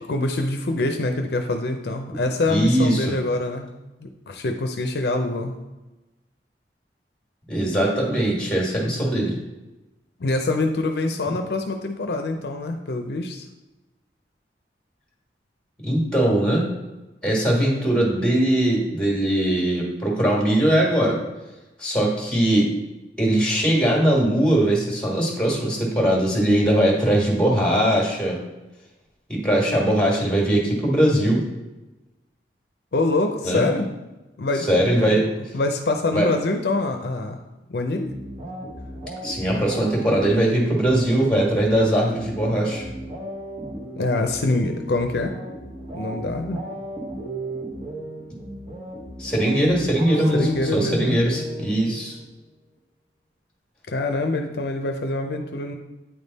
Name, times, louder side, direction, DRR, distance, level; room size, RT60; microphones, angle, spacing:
voice 1, 0.0-3.7 4.0-5.5 10.2-13.5 32.9-33.9 34.4-34.7 35.0-35.3 35.5-37.4 37.7-38.1 44.0-45.4 45.9-46.6 50.3-51.2 53.9-55.7, left 2 dB, 60° left, 5 dB, 0.5 m, -25 dB
voice 2, 2.5-3.1 7.5-9.3 15.8-16.7 17.2-21.2 21.8-22.7 23.2-28.4 29.3-31.4 33.4-33.6 34.7-35.2 36.1-36.3 39.2-42.9 49.2-52.2, right 1 dB, 5° left, -3 dB, 1.7 m, -20 dB
sound 1, 38.0-52.3, right 1 dB, 35° right, 1.1 m, -36 dB
8.8 x 3.5 x 4.0 m, 1.1 s
head